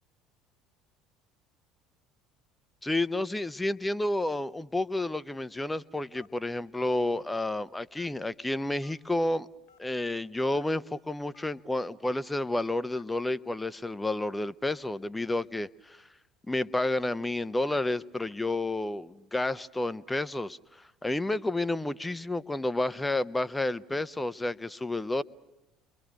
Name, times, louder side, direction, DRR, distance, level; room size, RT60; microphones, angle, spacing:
voice 1, 2.8-9.5 9.8-16.0 16.5-20.6 21.0-25.2, left 2 dB, 10° left, 0.8 m, -30 dB
Telephone, 6.2-6.5 7.0-7.2 7.9-8.3 8.8-8.9 9.7-9.8 10.5-10.7 11.3-11.5 12.1-12.2 12.9-13.2 13.8-14.0, left 7 dB, 55° left, 1.4 m, -57 dB
29.5 x 23.0 x 6.3 m
figure-of-eight pair, 60°, 0 cm